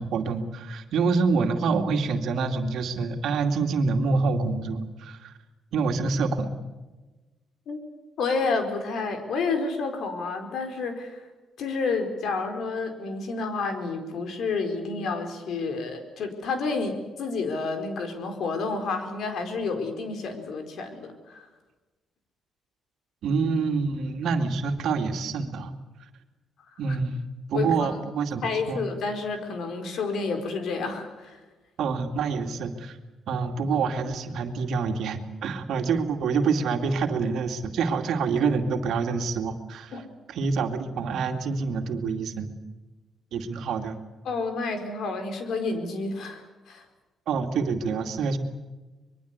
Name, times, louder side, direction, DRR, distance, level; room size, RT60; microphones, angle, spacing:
voice 1, 0.0-5.3 5.7-6.5 23.2-25.7 26.8-27.2 27.5-28.8 31.8-33.0 33.3-40.0 40.3-42.5 43.3-44.0 47.3-48.4, right 4 dB, 75° right, 5 dB, 2.4 m, -26 dB
voice 2, 8.2-11.2 11.6-21.4 27.5-28.0 28.4-31.4 39.9-40.0 44.2-46.8, left 4 dB, 70° left, 6 dB, 4.4 m, -30 dB
24.5 x 22.0 x 8.3 m, 1.2 s
cardioid pair, 90°, 0 cm